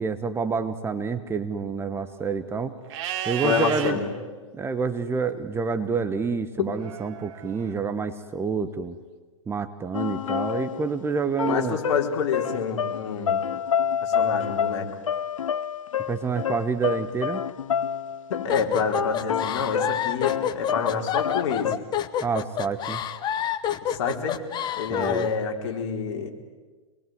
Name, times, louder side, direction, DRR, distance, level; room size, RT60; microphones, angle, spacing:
voice 1, 0.0-2.8 3.3-4.0 4.5-8.9 9.5-11.8 16.1-17.4 22.2-23.0 24.9-25.3, right 5 dB, 15° right, 10 dB, 1.2 m, -28 dB
Livestock farm animals working animals, 2.9-3.9 6.8-7.7, right 10 dB, 50° right, 3.0 m, -32 dB
voice 2, 3.4-4.1 6.6-6.7 11.4-13.5 14.0-14.9 18.3-21.7 23.8-24.4 24.8-26.3, left 6 dB, 55° left, 2 dB, 4.3 m, -27 dB
sound 1, 9.9-11.0 11.4-18.5 18.8-21.7, left 8 dB, 85° left, 0.8 m, -28 dB
sound 2, 18.5-25.3, left 10 dB, 25° left, 1.2 m, -28 dB
27.0 x 21.5 x 9.5 m, 1.3 s
hypercardioid pair, 125°, 17 cm